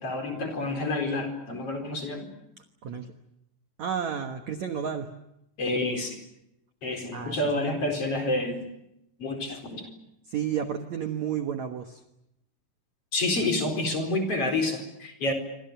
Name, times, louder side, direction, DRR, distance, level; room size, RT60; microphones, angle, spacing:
voice 1, 0.0-2.3 5.6-6.2 6.8-8.6 9.2-9.9 13.1-15.3, left 2 dB, 30° left, 5 dB, 4.9 m, -28 dB
voice 2, 2.8-3.1 3.8-5.1 7.1-7.8 10.3-12.0, right 8 dB, 75° right, 6 dB, 1.6 m, -32 dB
27.5 x 26.0 x 6.8 m, 0.86 s
omnidirectional pair, 5.4 m